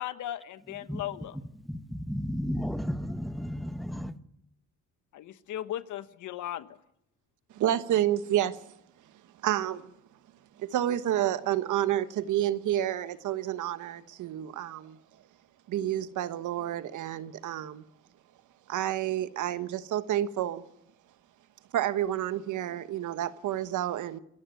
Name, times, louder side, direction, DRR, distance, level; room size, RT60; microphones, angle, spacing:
voice 1, 0.0-1.4 5.1-6.8, left 12 dB, 80° left, 1.3 m, -37 dB
voice 2, 1.5-4.2, equal, ahead, 1.3 m, -33 dB
voice 3, 7.5-8.6 9.4-9.9 10.6-15.0 15.7-17.8 18.7-20.6 21.7-24.2, right 12 dB, 80° right, 1.3 m, -29 dB
26.5 x 14.5 x 9.2 m
cardioid pair, 90°, 30 cm